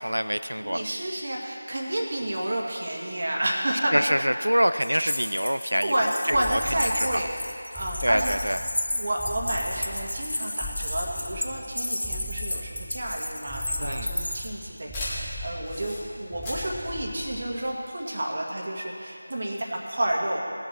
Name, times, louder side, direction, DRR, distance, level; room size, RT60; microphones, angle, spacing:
voice 1, 0.0-0.8 3.9-5.9 6.3-6.6 7.0-7.2 8.0-8.6 13.8-14.1, equal, 85° right, 12 dB, 0.3 m, -25 dB
voice 2, 0.6-4.0 5.8-7.3 7.7-8.3 8.9-20.4, right 1 dB, 45° right, -2 dB, 1.8 m, -30 dB
sound 1, 4.8-14.5, left 1 dB, 70° left, 0.9 m, -33 dB
sound 2, 6.3-17.7, left 1 dB, ahead, 0.5 m, -40 dB
sound 3, 13.1-18.2, left 1 dB, 15° left, 2.3 m, -39 dB
19.0 x 7.4 x 4.4 m, 2.5 s
figure-of-eight pair, 165°, 0 cm